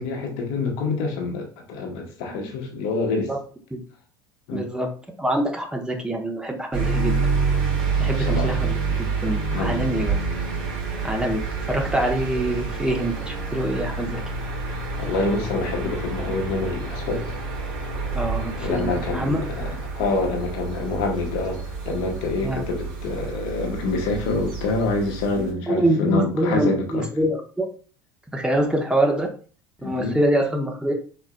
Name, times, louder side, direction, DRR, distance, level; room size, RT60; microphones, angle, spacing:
voice 1, 0.0-3.3 4.5-4.7 8.0-8.6 9.5-9.8 14.9-17.3 18.6-27.0 29.8-30.2, left 3 dB, 60° left, 1.2 m, -27 dB
voice 2, 4.5-4.9 5.2-7.2 8.0-10.1 11.0-11.4 11.7-14.2 18.1-19.4 22.4-22.6 25.7-27.6 28.3-29.3 29.8-30.9, right 1 dB, 5° right, 1.0 m, -25 dB
sound 1, 6.7-25.5, right 4 dB, 65° right, 2.2 m, -28 dB
4.6 x 4.2 x 2.2 m
figure-of-eight pair, 70°, 12 cm